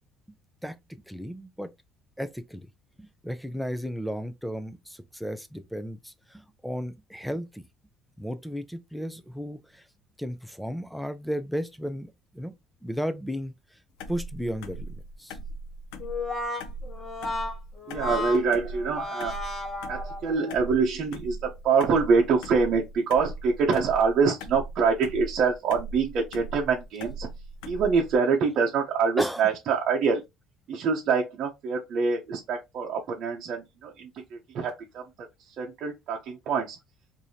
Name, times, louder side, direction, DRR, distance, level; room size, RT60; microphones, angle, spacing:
voice 1, 1.1-1.7 2.2-2.7 3.0-7.6 8.2-9.8 10.2-12.5 12.8-13.5 14.1-15.4 29.2-29.4, equal, ahead, 0.5 m, -34 dB
sound 1, 14.0-28.2, right 1 dB, 90° left, 0.5 m, -40 dB
Brass instrument, 16.0-20.5, left 3 dB, 25° left, 1.4 m, -33 dB
voice 2, 17.9-19.4 19.9-27.3 27.6-30.2 30.7-35.1 35.5-36.8, right 5 dB, 55° right, 0.8 m, -25 dB
4.7 x 2.7 x 2.7 m
cardioid pair, 125°, 0 cm